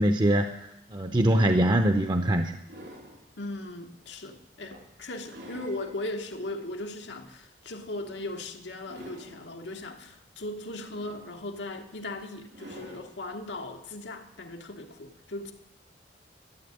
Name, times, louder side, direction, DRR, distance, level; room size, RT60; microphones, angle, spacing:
voice 1, 0.0-2.6, right 1 dB, 25° right, 7 dB, 0.6 m, -23 dB
sound 1, 2.2-3.2 3.9-4.1 4.7-5.9 6.3-6.4 8.0-8.4 8.7-9.5 10.7-11.6 12.5-13.1 14.5-14.6, equal, 80° right, 3.8 m, -47 dB
voice 2, 3.4-15.5, left 2 dB, 90° left, 4 dB, 1.4 m, -38 dB
12.5 x 7.6 x 9.3 m, 0.83 s
head